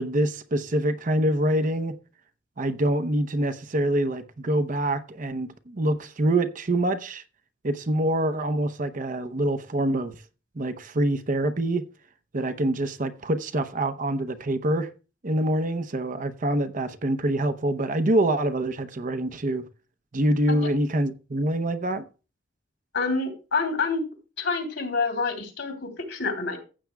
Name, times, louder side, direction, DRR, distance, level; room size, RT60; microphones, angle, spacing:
voice 1, 0.0-2.0 2.6-7.2 7.6-10.2 10.6-11.8 12.3-14.9 15.2-19.6 20.1-22.0, right 1 dB, 40° right, 0.7 m, -25 dB
voice 2, 22.9-24.0 24.4-26.6, left 4 dB, 65° left, 3.2 m, -27 dB
15.0 x 8.4 x 2.3 m
head